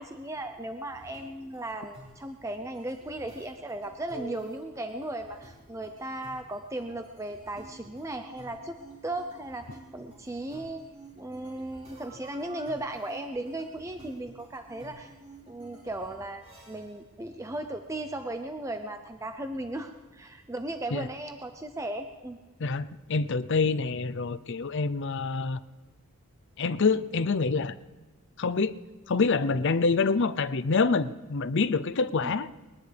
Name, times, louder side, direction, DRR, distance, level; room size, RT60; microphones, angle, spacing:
voice 1, 0.0-8.8 9.0-9.7 9.9-10.8 11.2-15.1 15.5-22.4 32.2-32.3, right 1 dB, 15° right, 6 dB, 0.6 m, -36 dB
sound 1, 0.9-17.0, right 2 dB, 30° right, 5.0 m, -50 dB
voice 2, 22.6-25.6 26.6-27.7 28.4-28.8 29.1-32.5, left 4 dB, 55° left, 14 dB, 0.6 m, -26 dB
21.5 x 19.5 x 3.4 m, 1.3 s
head